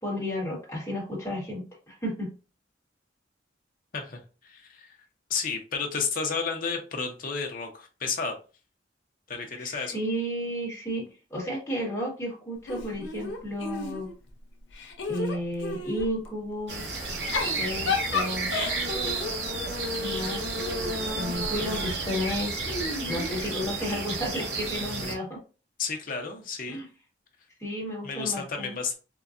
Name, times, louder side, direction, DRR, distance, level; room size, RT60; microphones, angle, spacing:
voice 1, 0.0-2.3 9.6-14.1 15.1-17.0 17.6-18.5 20.0-20.5 21.1-22.5 23.1-25.4 26.7-26.9 27.6-28.8, equal, 15° left, -4 dB, 1.2 m, -32 dB
voice 2, 3.9-5.0 5.3-8.4 9.3-10.0 25.8-26.8 28.0-29.0, left 5 dB, 45° left, 3 dB, 0.7 m, -32 dB
Giggle / Chuckle chortle, 12.7-14.3 14.7-16.1 17.1-21.6 22.6-24.0, left 3 dB, 80° left, 0.6 m, -33 dB
sound 1, 16.7-25.1, right 2 dB, 65° right, 0.9 m, -31 dB
3.7 x 2.2 x 2.5 m, 0.33 s
head